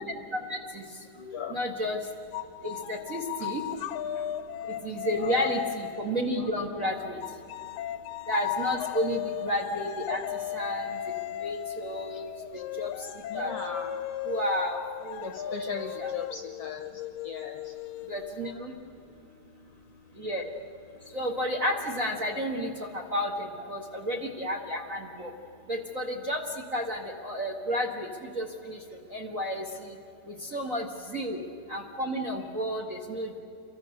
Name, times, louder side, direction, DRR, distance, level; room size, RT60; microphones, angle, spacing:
voice 1, 0.3-0.8 1.5-2.0 2.6-3.6 4.7-7.2 8.3-10.2 10.5-11.0 11.3-12.3 12.8-12.9 13.3-13.5 14.3-15.3 15.7-16.1 18.1-18.7 20.2-20.4 21.1-25.3 25.7-26.4 26.7-28.1 28.3-29.9 30.3-31.4 31.7-33.4, equal, 30° right, 3 dB, 1.6 m, -31 dB
voice 2, 1.1-1.6 3.4-3.5 4.1-4.3 5.2-5.5 6.4-6.5 12.1-12.2 12.5-12.6 13.3-14.0 15.2-16.9 17.2-17.7, left 5 dB, 65° left, 6 dB, 1.6 m, -39 dB
sound 1, 2.3-6.7 7.2-18.6, left 11 dB, 90° left, 2.4 m, -36 dB
29.5 x 24.0 x 6.7 m, 2.8 s
omnidirectional pair, 3.8 m